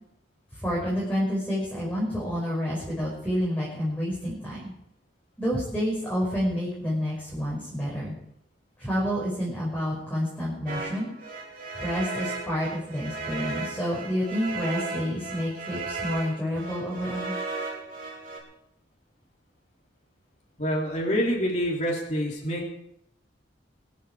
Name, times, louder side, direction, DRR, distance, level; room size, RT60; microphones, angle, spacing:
voice 1, 0.5-4.7 5.4-8.2 8.8-11.1 11.8-17.3, equal, 10° left, -6 dB, 5.5 m, -29 dB
sound 1, 10.7-18.4, right 3 dB, 50° right, 3.8 m, -35 dB
voice 2, 20.6-22.7, equal, 40° left, -2 dB, 3.2 m, -27 dB
24.0 x 9.4 x 4.9 m, 0.76 s
head